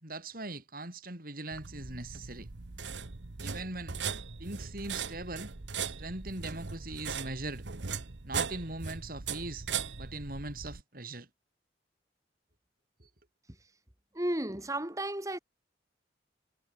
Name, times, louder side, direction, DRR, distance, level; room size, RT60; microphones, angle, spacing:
voice 1, 0.0-2.5 3.4-4.0 4.4-5.5 5.9-7.6 8.2-9.7 10.0-11.3 13.0-13.1, right 2 dB, 55° right, 5.5 m, -40 dB
sound 1, 1.5-10.8, right 6 dB, 85° right, 1.2 m, -39 dB
voice 2, 14.2-15.4, right 1 dB, 20° right, 2.5 m, -33 dB
head